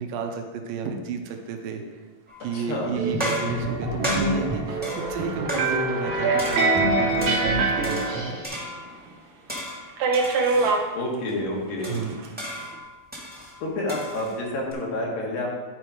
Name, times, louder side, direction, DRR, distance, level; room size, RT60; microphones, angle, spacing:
voice 1, 0.0-1.8 2.4-8.4 11.9-12.1, right 5 dB, 90° right, 4 dB, 2.5 m, -32 dB
sound 1, 2.3-2.7 3.2-6.1 6.4-7.5 7.8-9.0 9.5-10.8 11.3-11.4 11.8-14.7, equal, 5° right, 0.9 m, -34 dB
voice 2, 2.5-3.0 10.9-12.0 13.6-15.6, left 1 dB, 90° left, -2 dB, 3.2 m, -29 dB
sound 2, 3.0-8.5, right 1 dB, 55° right, 1.5 m, -26 dB
sound 3, 5.6-8.8 9.1-9.2 10.0-10.9 11.8-12.3, right 4 dB, 70° right, 1.7 m, -25 dB
9.8 x 4.6 x 4.9 m, 1.3 s
omnidirectional pair, 3.9 m